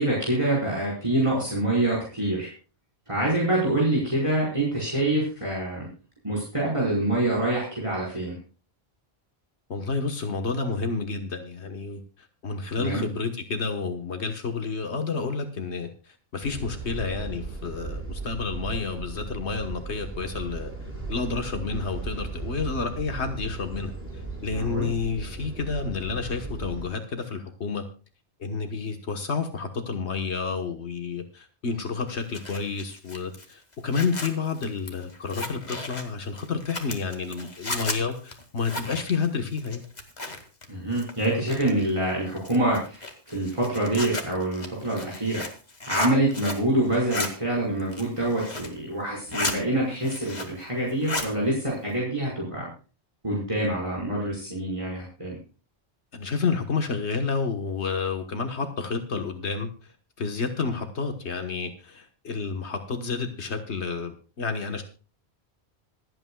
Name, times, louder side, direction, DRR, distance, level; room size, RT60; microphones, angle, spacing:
voice 1, 0.0-2.5 3.1-5.9 6.2-8.4 12.8-13.0 24.5-24.9 40.7-45.4 45.8-52.7 53.2-55.4, right 1 dB, 30° right, -4 dB, 5.0 m, -26 dB
voice 2, 9.7-20.7 21.1-27.8 28.4-39.8 56.1-59.7 60.2-64.8, left 4 dB, 75° left, 6 dB, 1.6 m, -30 dB
sound 1, 16.4-26.9, right 3 dB, 10° right, 5.3 m, -36 dB
Zipper (clothing), 32.1-40.7 40.9-41.9 42.4-46.7 46.9-47.3 47.8-48.8 49.1-49.6 49.9-50.6 50.9-51.3, left 2 dB, 40° left, 2.2 m, -34 dB
26.5 x 8.9 x 2.3 m, 0.36 s
omnidirectional pair, 1.1 m